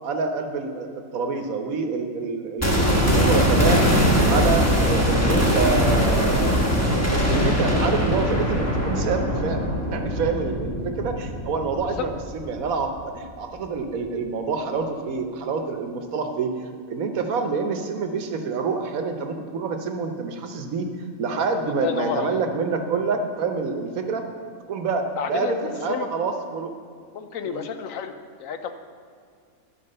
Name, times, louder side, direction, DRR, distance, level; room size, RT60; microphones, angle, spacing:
voice 1, 0.0-3.9 4.2-6.6 6.9-16.5 16.9-20.9 21.2-24.3 24.7-26.7 27.4-27.6, right 4 dB, 85° right, 5 dB, 1.3 m, -27 dB
sound 1, 2.6-12.6 12.9-13.0, equal, 10° left, 1.2 m, -21 dB
voice 2, 21.8-22.4 25.2-25.5 25.9-26.1 27.1-28.7, left 7 dB, 75° left, 8 dB, 1.1 m, -30 dB
11.0 x 4.7 x 6.5 m, 2.2 s
omnidirectional pair, 1.4 m